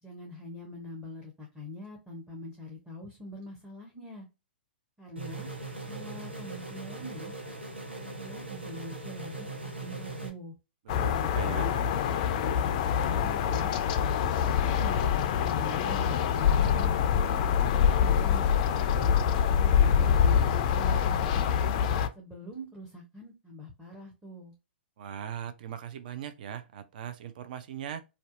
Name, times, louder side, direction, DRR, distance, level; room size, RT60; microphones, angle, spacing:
voice 1, 0.0-4.3 5.0-5.5 5.8-7.3 8.0-10.5 11.0-13.7 14.3-16.9 22.2-24.5, left 1 dB, 5° right, 0.6 m, -44 dB
sound 1, 5.2-10.3, right 2 dB, 85° right, 0.7 m, -40 dB
sound 2, 10.9-22.1, left 8 dB, 40° left, 0.3 m, -25 dB
voice 2, 11.0-11.7 25.0-28.0, right 9 dB, 50° right, 0.3 m, -39 dB
2.6 x 2.2 x 2.4 m
figure-of-eight pair, 115°, 6 cm